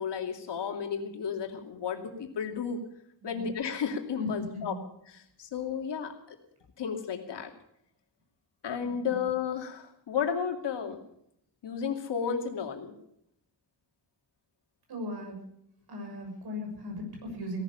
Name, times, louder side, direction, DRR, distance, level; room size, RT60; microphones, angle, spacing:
voice 1, 0.0-2.8 3.2-4.8 5.1-6.1 6.8-7.5 8.6-11.0 11.6-12.9, left 7 dB, 90° left, 3 dB, 2.7 m, -33 dB
voice 2, 4.2-4.8 9.1-9.2 14.9-15.4 15.9-17.6, left 1 dB, 65° right, 2 dB, 6.8 m, -37 dB
17.5 x 12.0 x 6.9 m, 0.75 s
wide cardioid pair, 145°, 41 cm